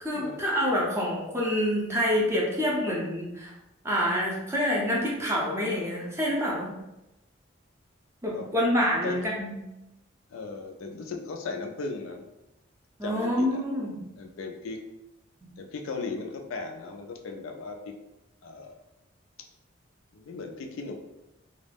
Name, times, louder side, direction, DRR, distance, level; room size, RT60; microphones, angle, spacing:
voice 1, 0.0-3.5 3.8-6.7 8.2-9.5 13.0-14.0, equal, 15° right, -4 dB, 0.5 m, -27 dB
voice 2, 10.3-12.3 13.0-13.6 14.2-14.8 15.6-17.9 18.4-18.8 20.1-20.9, left 4 dB, 75° left, 4 dB, 0.3 m, -37 dB
2.3 x 2.0 x 3.3 m, 0.94 s
head